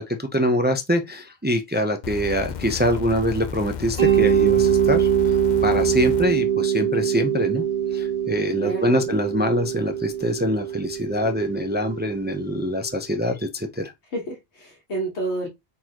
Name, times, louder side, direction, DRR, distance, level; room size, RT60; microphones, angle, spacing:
voice 1, 0.0-5.4 5.6-7.6 7.9-13.9, equal, 15° right, 0.4 m, -24 dB
sound 1, 2.0-6.3 7.2-7.3, left 7 dB, 55° left, 0.6 m, -33 dB
Mallet percussion, 4.0-12.7, right 9 dB, 35° right, 1.2 m, -23 dB
voice 2, 8.6-9.1 14.1-15.5, right 2 dB, 85° left, 1.7 m, -29 dB
4.5 x 4.1 x 2.9 m
omnidirectional pair, 1.1 m